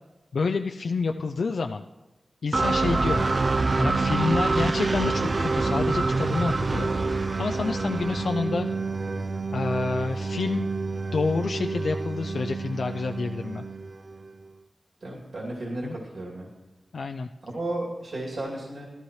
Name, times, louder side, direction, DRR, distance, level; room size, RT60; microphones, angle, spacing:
voice 1, 0.3-1.8 2.4-3.3 3.8-8.7 9.5-10.7 11.1-13.6 15.8-16.0 16.9-17.3, left 4 dB, 75° left, 5 dB, 0.4 m, -28 dB
sound 1, 2.5-14.3, right 3 dB, 40° right, 0.4 m, -27 dB
voice 2, 15.0-16.5 17.4-18.9, right 1 dB, 70° right, -3 dB, 2.7 m, -33 dB
17.0 x 13.0 x 3.2 m, 1.0 s
wide cardioid pair, 80°, 0 cm